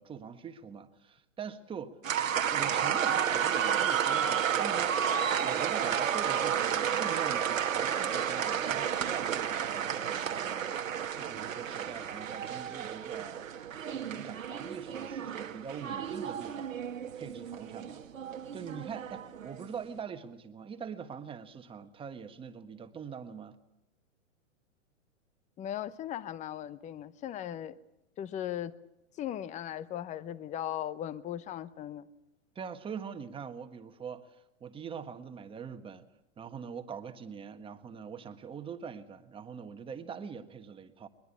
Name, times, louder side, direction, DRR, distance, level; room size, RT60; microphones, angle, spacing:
voice 1, 0.0-2.0 2.3-5.0 5.4-10.6 11.2-13.5 13.7-16.7 17.1-18.0 18.5-23.6 32.5-34.3 34.6-36.1 36.4-41.1, right 7 dB, 15° right, 7 dB, 1.4 m, -43 dB
sound 1, 2.0-19.7, right 8 dB, 90° right, 1.6 m, -32 dB
voice 2, 25.6-27.8 28.2-28.7 29.2-32.1, left 11 dB, 20° left, 17 dB, 0.8 m, -38 dB
22.0 x 21.5 x 8.5 m, 0.86 s
hypercardioid pair, 130°, 38 cm